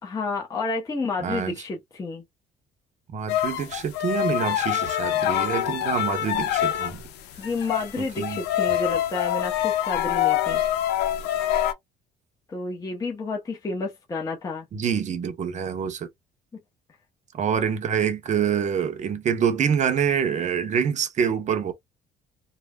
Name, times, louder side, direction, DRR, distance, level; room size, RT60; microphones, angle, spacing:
voice 1, 0.0-2.2 7.4-10.6 12.5-14.7, left 3 dB, 20° left, 0.8 m, -30 dB
voice 2, 1.2-1.6 3.1-7.0 8.0-8.4 14.7-16.1 17.3-21.7, right 7 dB, 45° right, 0.8 m, -26 dB
sound 1, 3.3-7.1 7.4-11.7, left 12 dB, 85° left, 0.6 m, -25 dB
3.2 x 2.2 x 2.3 m
cardioid pair, 110°, 17 cm